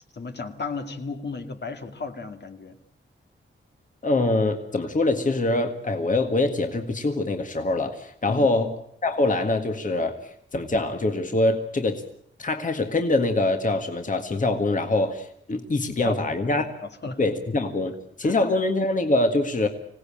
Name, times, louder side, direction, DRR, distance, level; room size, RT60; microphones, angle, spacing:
voice 1, 0.1-2.8 8.3-8.5 16.0-16.2 16.6-17.2 18.2-18.4, left 4 dB, 55° left, 6 dB, 2.1 m, -34 dB
voice 2, 4.0-8.7 9.0-10.2 10.5-12.0 12.4-16.6 17.2-19.7, left 2 dB, 40° left, 5 dB, 1.8 m, -24 dB
26.0 x 18.0 x 8.7 m, 0.70 s
wide cardioid pair, 155°, 21 cm